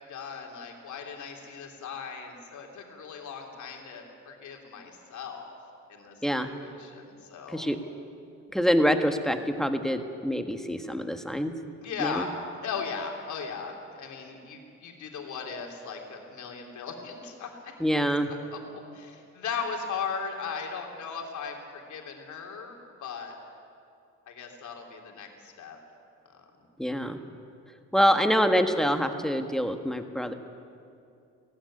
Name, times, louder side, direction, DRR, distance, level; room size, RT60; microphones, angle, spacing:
voice 1, 0.1-5.5 5.9-6.1 6.5-7.7 11.8-12.3 12.6-17.7 18.5-18.6 18.9-23.3 24.3-25.8, left 6 dB, 70° left, 2 dB, 3.3 m, -37 dB
voice 2, 8.5-11.5 12.0-12.3 17.8-18.3 26.8-27.2 27.9-30.3, equal, ahead, 6 dB, 1.5 m, -25 dB
17.5 x 15.5 x 10.0 m, 2.5 s
cardioid pair, 90°, 30 cm